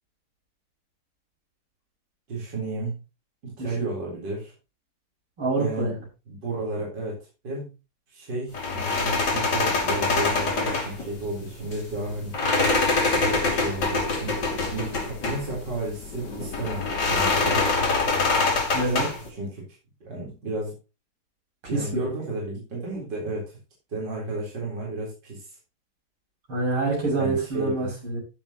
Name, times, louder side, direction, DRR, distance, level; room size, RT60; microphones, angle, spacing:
voice 1, 2.3-3.0 3.4-4.5 5.6-5.9 6.3-7.2 7.4-7.7 8.1-12.3 13.0-14.4 14.7-17.7 18.8-19.6 20.0-20.7 21.7-23.6 23.9-25.6 27.2-27.9, right 2 dB, 55° right, -3 dB, 4.6 m, -32 dB
voice 2, 3.6-3.9 5.4-6.0 18.7-19.1 21.7-22.0 26.5-28.2, right 2 dB, 85° right, -3 dB, 7.9 m, -26 dB
sound 1, 8.5-19.3, left 3 dB, 55° left, 3.3 m, -25 dB
14.5 x 7.4 x 3.0 m, 0.29 s
omnidirectional pair, 2.3 m